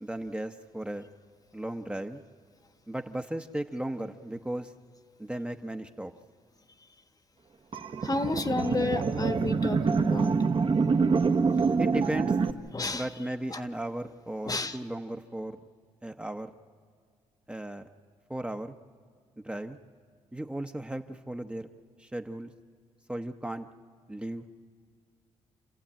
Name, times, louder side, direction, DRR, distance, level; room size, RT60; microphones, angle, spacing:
voice 1, 0.0-1.1 1.5-2.2 2.9-4.7 5.2-6.1 11.8-12.4 12.9-15.6 16.0-16.5 17.5-17.8 18.3-18.7 19.4-19.8 20.3-21.7 22.0-22.5 23.1-23.7 24.1-24.5, right 1 dB, 10° right, 5 dB, 1.0 m, -35 dB
sound 1, 7.7-12.5, right 5 dB, 45° right, 1.2 m, -26 dB
voice 2, 8.0-10.4 11.5-11.6 12.7-13.1 13.5-13.6 14.4-14.8, left 3 dB, 30° left, 9 dB, 1.3 m, -31 dB
28.0 x 14.5 x 8.9 m, 2.1 s
supercardioid pair, 65°, 12 cm